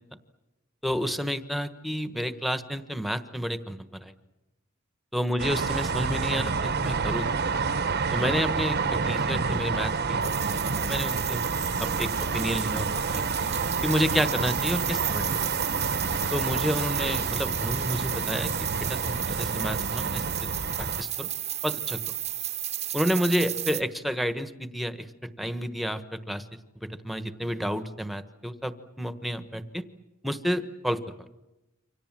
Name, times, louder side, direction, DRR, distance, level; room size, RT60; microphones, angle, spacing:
voice 1, 0.8-4.1 5.1-7.3 8.1-10.2 10.9-11.4 11.8-13.2 13.8-15.3 16.3-20.2 20.8-21.3 21.6-22.0 22.9-25.1 25.4-26.4 26.8-29.8 30.2-31.3, equal, ahead, 10 dB, 1.3 m, -30 dB
sound 1, 5.4-21.0, right 4 dB, 55° right, 1.1 m, -29 dB
sound 2, 10.2-23.8, right 11 dB, 35° right, 1.0 m, -34 dB
29.0 x 25.5 x 7.6 m, 0.99 s
head